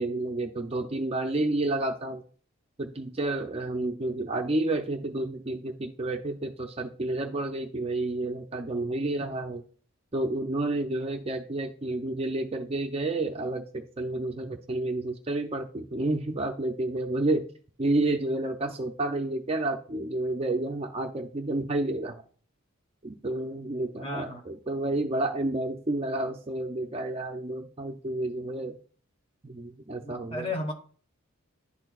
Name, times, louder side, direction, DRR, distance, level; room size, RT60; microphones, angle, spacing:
voice 1, 0.0-2.2 2.8-9.6 10.1-17.5 17.8-22.2 23.0-28.8 29.4-30.5, right 2 dB, 25° right, 5 dB, 0.5 m, -30 dB
voice 2, 24.0-24.5 30.0-30.7, left 2 dB, 25° left, 4 dB, 1.1 m, -34 dB
11.0 x 4.4 x 2.3 m, 0.42 s
head